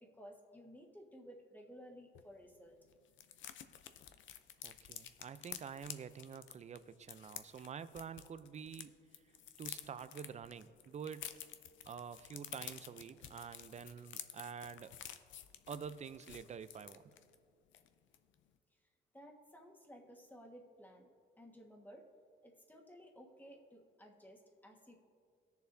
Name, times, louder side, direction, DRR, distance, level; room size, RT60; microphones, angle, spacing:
voice 1, 0.0-2.8 19.1-21.1 21.4-22.1 22.4-24.9, equal, 10° left, 1 dB, 1.5 m, -56 dB
sound 1, 2.1-2.3 2.5-2.6 2.9-8.8 9.1-17.3 17.7-17.9 18.1-18.4, left 10 dB, 75° left, 0.6 m, -51 dB
voice 2, 4.6-9.1 9.6-11.3 11.9-14.9 15.7-17.0, right 7 dB, 35° right, 14 dB, 0.5 m, -48 dB
17.5 x 6.9 x 2.7 m, 2.2 s
cardioid pair, 90°, 20 cm